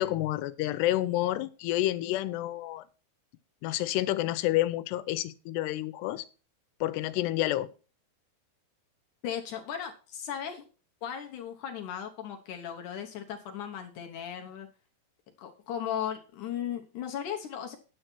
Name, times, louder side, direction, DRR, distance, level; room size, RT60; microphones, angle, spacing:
voice 1, 0.0-2.8 3.6-6.3 6.8-7.7, left 15 dB, 90° left, 2.8 m, -29 dB
voice 2, 9.2-10.6 11.0-14.7 15.4-17.8, left 9 dB, 70° left, 2.0 m, -36 dB
10.0 x 7.9 x 4.5 m
omnidirectional pair, 4.7 m